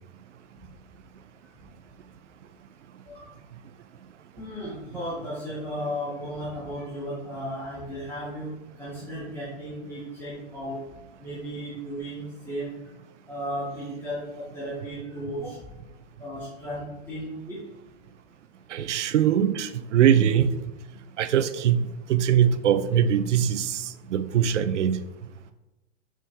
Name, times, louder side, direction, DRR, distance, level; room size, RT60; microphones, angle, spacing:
voice 1, 4.4-8.5 8.8-10.8 11.2-12.7 13.3-15.6 16.2-17.6, equal, 5° left, -10 dB, 2.2 m, -35 dB
voice 2, 18.7-20.6 21.2-25.0, right 9 dB, 80° right, 12 dB, 0.7 m, -22 dB
6.3 x 6.0 x 3.4 m, 1.0 s
hypercardioid pair, 125°, 35 cm